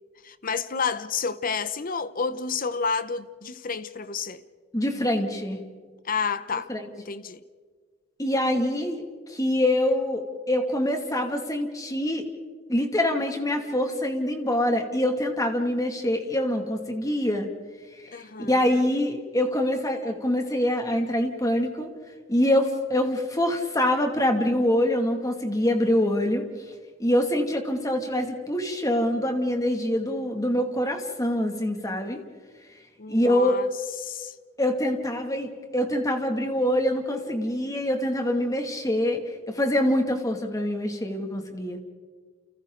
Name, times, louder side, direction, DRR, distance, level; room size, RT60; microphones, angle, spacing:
voice 1, 0.2-4.4 6.0-6.7 7.0-7.4 18.1-18.9 33.0-33.7 34.0-34.3, left 5 dB, 45° left, 0.9 m, -30 dB
voice 2, 4.7-5.6 6.7-6.9 8.2-9.0 9.3-12.3 12.7-17.5 18.1-21.9 22.3-26.4 27.0-32.2 33.1-33.6 34.6-39.2 39.5-41.8, left 1 dB, 20° left, 2.5 m, -25 dB
30.0 x 29.5 x 4.0 m
head